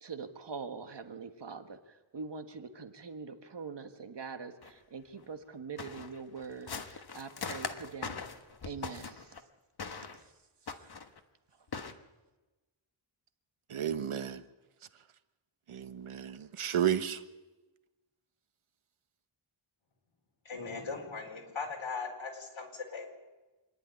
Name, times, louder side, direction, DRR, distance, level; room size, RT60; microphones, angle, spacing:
voice 1, 0.0-8.2 8.6-9.3 10.1-10.2 11.7-11.9, right 5 dB, 55° right, 1.6 m, -44 dB
sound 1, 4.6-4.7 5.2-5.3 5.8-9.4 9.8-10.2 10.7-11.2 11.7-11.9, left 5 dB, 50° left, 1.4 m, -41 dB
voice 2, 13.7-14.4 15.7-17.2, right 9 dB, 80° right, 1.1 m, -32 dB
voice 3, 20.4-23.1, left 4 dB, 65° left, 4.5 m, -39 dB
26.5 x 11.0 x 9.4 m
wide cardioid pair, 135°, 49 cm